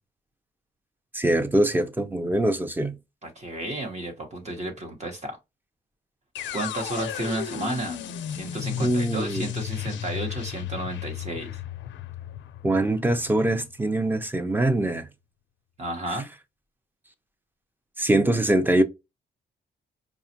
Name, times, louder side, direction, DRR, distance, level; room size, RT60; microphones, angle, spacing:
voice 1, 1.1-3.0 8.8-9.5 12.6-15.1 18.0-18.8, right 1 dB, 10° right, 0.5 m, -23 dB
voice 2, 3.2-5.4 6.5-8.0 8.3-11.5 15.8-16.3, right 2 dB, 35° right, 1.0 m, -32 dB
sound 1, 6.4-14.3, left 11 dB, 90° left, 0.5 m, -35 dB
5.0 x 2.3 x 2.8 m
cardioid pair, 115°, 19 cm